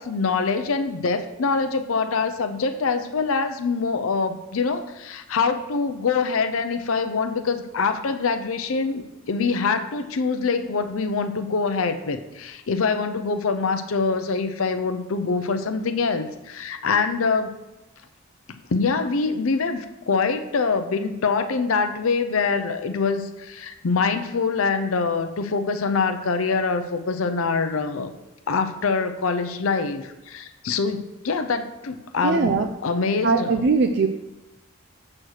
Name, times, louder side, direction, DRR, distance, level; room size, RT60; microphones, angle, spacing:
voice 1, 0.0-17.5 18.7-28.1 28.5-33.6, left 4 dB, 80° left, 8 dB, 0.5 m, -24 dB
voice 2, 32.2-32.7 33.2-34.1, right 4 dB, 55° right, 4 dB, 0.4 m, -20 dB
6.3 x 4.3 x 6.4 m, 1.0 s
head